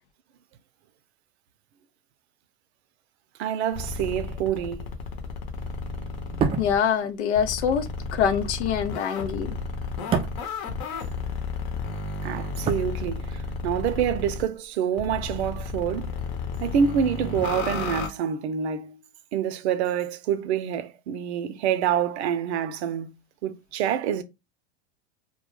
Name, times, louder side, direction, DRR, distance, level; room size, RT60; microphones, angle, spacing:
voice 1, 3.4-4.9 12.2-16.1 16.6-19.0 19.3-23.1 23.4-24.2, right 8 dB, 75° right, 0.6 m, -27 dB
sound 1, 3.7-6.8 7.3-14.4 15.0-18.1, left 4 dB, 55° left, 0.8 m, -33 dB
sound 2, 6.2-11.5 11.8-13.6 13.9-14.1, right 6 dB, 20° right, 0.3 m, -32 dB
voice 2, 6.6-9.6, left 7 dB, 90° left, 0.6 m, -25 dB
2.3 x 2.2 x 3.1 m
hypercardioid pair, 115°, 33 cm